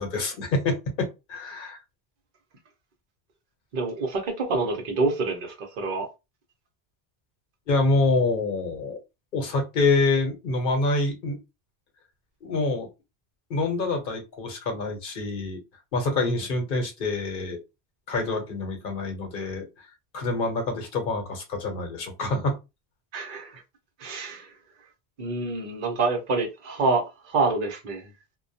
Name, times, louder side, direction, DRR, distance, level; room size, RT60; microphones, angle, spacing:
voice 1, 0.0-1.8 7.7-9.0 9.3-11.4 12.4-12.9 13.5-15.6 15.9-17.6 18.1-19.9 20.1-22.6, left 3 dB, 60° left, 0.9 m, -26 dB
voice 2, 3.7-6.1 23.1-23.6 24.0-24.5 25.2-28.1, right 3 dB, 55° right, 0.9 m, -27 dB
2.3 x 2.2 x 2.6 m
omnidirectional pair, 1.0 m